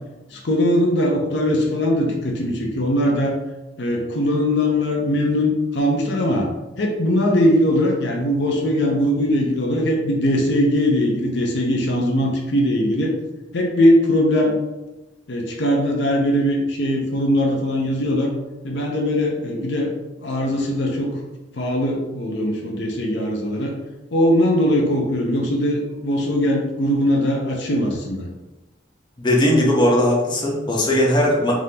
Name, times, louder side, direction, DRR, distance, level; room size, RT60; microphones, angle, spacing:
voice 1, 0.3-3.4 3.8-6.5 6.8-13.1 13.5-14.6 15.3-18.3 18.6-19.9 20.2-21.2 21.5-23.7 24.1-28.3, left 1 dB, 70° left, 0 dB, 0.6 m, -20 dB
voice 2, 29.2-31.5, left 1 dB, 25° left, -2 dB, 0.7 m, -18 dB
3.5 x 3.4 x 2.8 m, 1.0 s
head